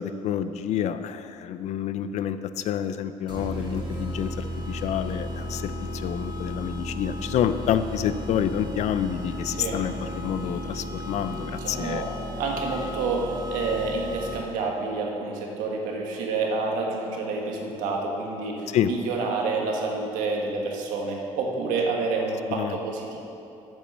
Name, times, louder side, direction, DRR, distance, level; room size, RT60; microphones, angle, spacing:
voice 1, 0.0-12.0 18.7-18.9 22.5-22.8, left 9 dB, 60° left, 12 dB, 0.5 m, -28 dB
sound 1, 3.3-14.7, equal, 35° right, 2.0 m, -34 dB
voice 2, 11.6-12.1 12.4-23.2, right 3 dB, 90° right, 0 dB, 1.5 m, -28 dB
8.3 x 6.1 x 7.1 m, 2.8 s
cardioid pair, 110°, 13 cm